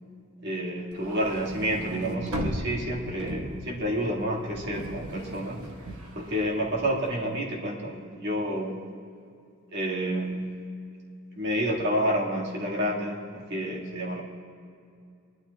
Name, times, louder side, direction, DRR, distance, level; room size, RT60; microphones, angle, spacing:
voice 1, 0.4-5.6 6.2-8.8 9.7-10.5 11.4-14.2, equal, 55° right, -2 dB, 1.8 m, -29 dB
sound 1, 0.9-7.2, right 1 dB, 75° right, 1.2 m, -37 dB
20.0 x 12.0 x 2.3 m, 2.4 s
head